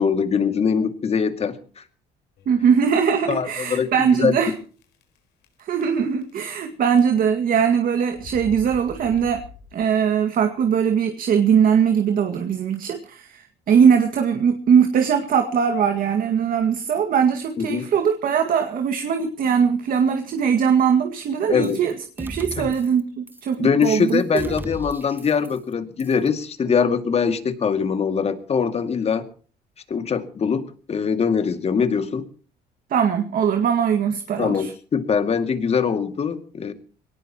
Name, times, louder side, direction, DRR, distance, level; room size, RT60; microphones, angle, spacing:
voice 1, 0.0-1.8 3.3-3.9 4.2-4.4 17.6-17.9 21.5-21.8 22.6-22.7 23.6-29.3 29.9-32.3 34.4-36.7, left 6 dB, 40° left, 9 dB, 2.3 m, -22 dB
sound 1, 2.4-2.8 3.4-3.5 3.8-3.9 4.8-5.2 5.4-6.6 6.9-7.4 8.1-10.1, left 6 dB, 75° left, 4.5 m, -43 dB
voice 2, 2.5-4.5 5.6-9.4 9.7-24.5 32.9-34.7, right 7 dB, 55° right, 6 dB, 2.0 m, -20 dB
sound 2, 21.6-21.9 22.2-23.0 23.3-23.6 23.8-25.7 26.0-26.3, right 2 dB, 10° right, 1.5 m, -37 dB
22.0 x 18.5 x 3.0 m, 0.41 s
cardioid pair, 110°, 17 cm